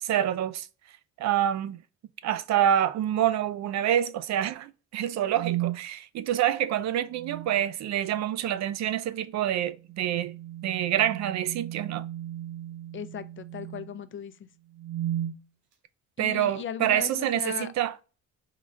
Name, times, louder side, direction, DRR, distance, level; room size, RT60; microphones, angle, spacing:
voice 1, 0.0-0.7 1.2-1.8 2.2-10.3 10.6-12.0 16.2-18.0, right 11 dB, 65° right, 0.4 m, -27 dB
sound 1, 5.3-5.8 7.1-7.6 9.8-14.0 14.7-15.4, right 13 dB, 80° right, 0.9 m, -35 dB
voice 2, 12.9-14.5 16.2-17.7, left 8 dB, 40° left, 0.5 m, -37 dB
3.8 x 2.3 x 3.1 m
cardioid pair, 90°, 30 cm